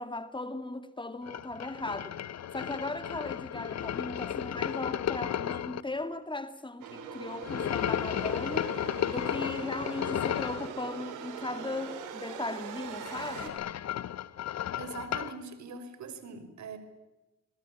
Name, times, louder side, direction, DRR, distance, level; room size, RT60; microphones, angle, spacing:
voice 1, 0.0-2.2 2.5-8.7 9.1-13.6, left 2 dB, 15° left, 2.1 m, -37 dB
sound 1, 1.3-5.8 7.4-10.7 12.8-15.4, left 10 dB, 60° left, 1.2 m, -34 dB
sound 2, 6.8-13.5, right 7 dB, 85° right, 5.1 m, -42 dB
voice 2, 14.8-16.8, right 5 dB, 70° right, 5.7 m, -42 dB
26.5 x 21.0 x 8.7 m
cardioid pair, 90°, 30 cm